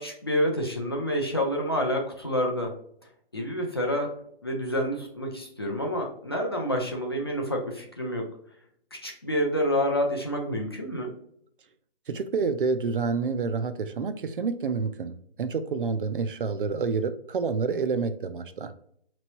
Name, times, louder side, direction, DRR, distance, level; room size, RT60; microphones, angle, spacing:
voice 1, 0.0-2.7 3.3-4.1 4.4-8.3 8.9-11.1, equal, 25° left, 0 dB, 0.4 m, -28 dB
voice 2, 12.1-18.7, right 5 dB, 60° right, 10 dB, 0.5 m, -28 dB
4.3 x 3.1 x 2.9 m, 0.67 s
hypercardioid pair, 165°, 30 cm